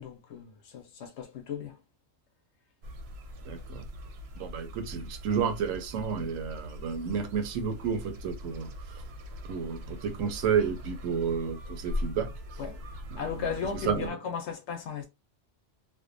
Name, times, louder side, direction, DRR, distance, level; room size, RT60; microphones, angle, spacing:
voice 1, 0.0-1.8 12.6-12.8 13.2-15.1, left 7 dB, 70° left, 0.8 m, -36 dB
sound 1, 2.8-14.1, left 1 dB, 65° right, 0.8 m, -41 dB
voice 2, 3.5-3.8 4.4-9.0 9.4-12.3 13.1-13.5 13.8-14.2, right 6 dB, 90° right, 1.0 m, -31 dB
2.6 x 2.1 x 2.5 m
omnidirectional pair, 1.3 m